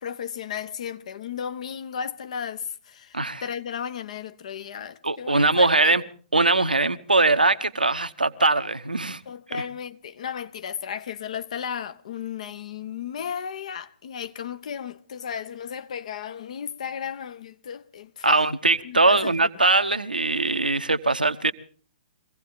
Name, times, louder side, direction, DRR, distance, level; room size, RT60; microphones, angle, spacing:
voice 1, 0.0-6.0 9.3-18.4 18.8-19.3, left 8 dB, 50° left, 0.8 m, -34 dB
voice 2, 5.0-6.0 6.3-9.2 9.5-9.6 18.2-21.5, right 3 dB, 80° right, 0.8 m, -21 dB
24.0 x 16.0 x 3.7 m
figure-of-eight pair, 120°, 5 cm